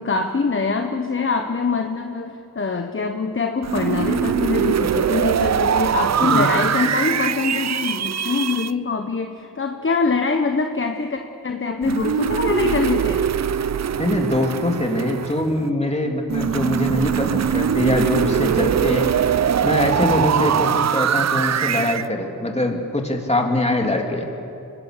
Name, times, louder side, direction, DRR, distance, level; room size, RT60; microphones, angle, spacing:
voice 1, 0.0-13.2, left 4 dB, 35° left, 5 dB, 1.3 m, -24 dB
sound 1, 3.6-8.7 11.8-15.6 16.3-22.1, right 8 dB, 45° right, 0.6 m, -22 dB
voice 2, 14.0-19.1 19.6-24.3, left 1 dB, 15° left, 2 dB, 3.3 m, -22 dB
25.0 x 19.5 x 6.9 m, 2.8 s
cardioid pair, 65°, 37 cm